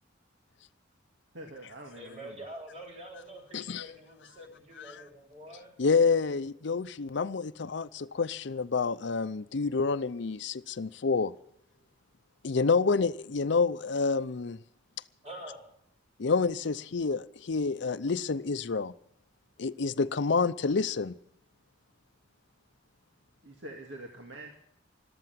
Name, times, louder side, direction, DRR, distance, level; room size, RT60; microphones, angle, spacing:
voice 1, 1.3-2.5 23.4-24.6, right 1 dB, 75° right, 2.2 m, -45 dB
voice 2, 1.9-5.7 14.9-15.0 15.2-15.7, right 1 dB, 35° right, 6.4 m, -46 dB
voice 3, 3.5-3.8 4.9-5.0 5.8-11.4 12.4-14.6 16.2-18.9 19.6-21.1, left 4 dB, 65° left, 0.6 m, -28 dB
13.5 x 12.5 x 7.6 m
head